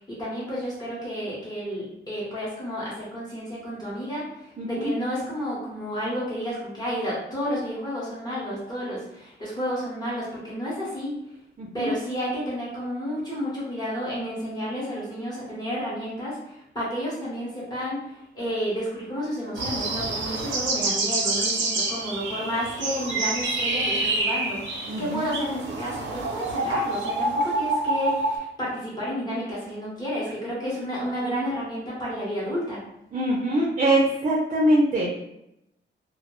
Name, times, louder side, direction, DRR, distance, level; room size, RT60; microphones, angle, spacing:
voice 1, 0.1-11.1 11.7-32.8, equal, 20° left, -7 dB, 0.8 m, -31 dB
voice 2, 4.6-4.9 11.6-11.9 24.9-25.3 33.1-35.1, right 1 dB, 35° right, -3 dB, 0.4 m, -23 dB
sound 1, 19.6-28.4, right 2 dB, 80° right, 0.6 m, -27 dB
2.2 x 2.0 x 3.0 m, 0.81 s
wide cardioid pair, 175°, 19 cm